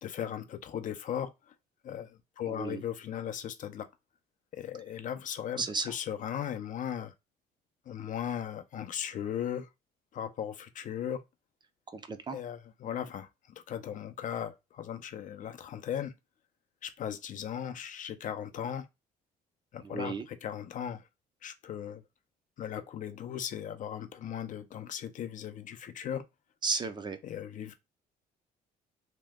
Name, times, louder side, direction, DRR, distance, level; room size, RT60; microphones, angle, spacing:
voice 1, 0.0-1.3 1.8-3.9 4.5-7.1 7.9-9.7 10.1-11.2 12.3-13.3 13.7-16.1 16.8-18.9 19.7-21.0 21.4-22.0 22.6-26.2 27.2-27.7, left 9 dB, 50° left, 0.5 m, -37 dB
voice 2, 2.5-2.8 5.6-5.9 11.9-12.4 19.8-20.3 26.6-27.2, right 4 dB, 25° right, 0.5 m, -34 dB
2.8 x 2.2 x 3.4 m
cardioid pair, 110°, 17 cm